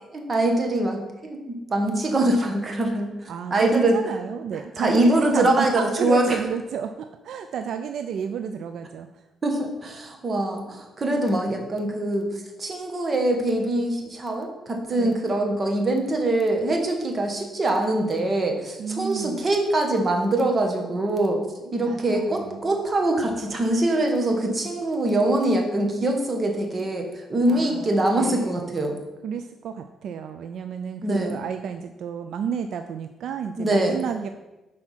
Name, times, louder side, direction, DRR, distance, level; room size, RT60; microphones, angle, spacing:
voice 1, 0.1-4.2 4.5-6.4 9.4-29.0 31.0-31.4 33.6-34.0, right 1 dB, 35° right, 3 dB, 1.4 m, -23 dB
voice 2, 3.3-9.1 15.0-15.2 18.8-19.5 21.9-22.8 27.5-28.6 29.2-34.3, right 7 dB, 70° right, 7 dB, 0.3 m, -31 dB
6.1 x 4.4 x 5.7 m, 1.1 s
cardioid pair, 90°, 0 cm